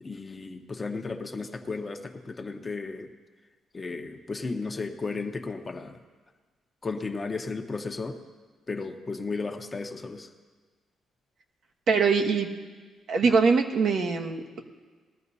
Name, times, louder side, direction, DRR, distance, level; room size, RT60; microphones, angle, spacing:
voice 1, 0.0-3.1 3.7-5.9 6.8-8.1 8.7-10.3, left 4 dB, 30° left, 5 dB, 1.0 m, -34 dB
voice 2, 11.9-12.5 13.1-14.6, right 5 dB, 65° right, 2 dB, 1.3 m, -23 dB
20.5 x 13.0 x 2.8 m, 1.4 s
cardioid pair, 90°, 0 cm